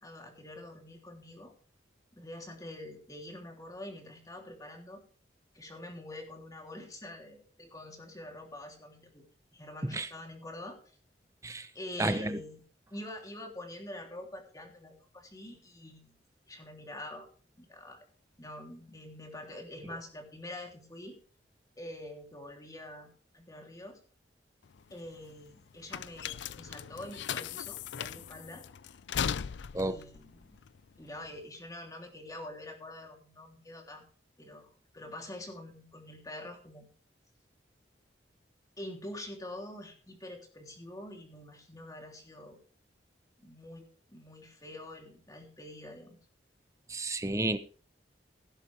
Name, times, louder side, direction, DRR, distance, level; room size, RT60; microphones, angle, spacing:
voice 1, 0.0-1.5 2.1-5.0 5.5-9.2 9.5-10.8 11.7-12.6 12.9-16.2 16.5-17.3 17.6-18.1 18.4-21.2 21.8-24.0 24.9-28.6 29.7-30.6 31.0-34.0 34.4-34.7 34.9-36.9 38.8-42.6 43.4-46.1, left 1 dB, 20° left, 2 dB, 3.2 m, -46 dB
voice 2, 12.0-12.4 29.7-30.0 46.9-47.6, right 2 dB, 20° right, 11 dB, 0.9 m, -31 dB
sound 1, 24.6-31.4, left 8 dB, 90° left, 0.5 m, -38 dB
17.5 x 9.9 x 3.4 m, 0.38 s
head